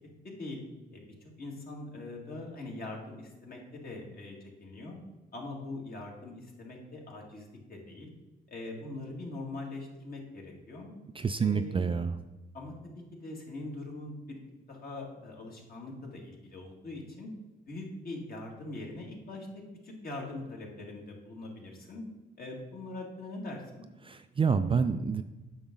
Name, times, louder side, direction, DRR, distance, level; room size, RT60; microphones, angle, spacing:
voice 1, 0.2-0.6 0.9-5.0 5.3-8.1 8.5-10.9 11.4-11.9 12.5-12.7 13.1-14.4 14.7-17.3 17.7-19.5 19.8-22.0 22.4-23.9, left 2 dB, 50° left, -1 dB, 2.3 m, -42 dB
voice 2, 11.2-12.2 24.0-25.2, right 5 dB, 25° right, 9 dB, 0.4 m, -28 dB
8.8 x 6.1 x 3.8 m, 1.1 s
cardioid pair, 90°, 20 cm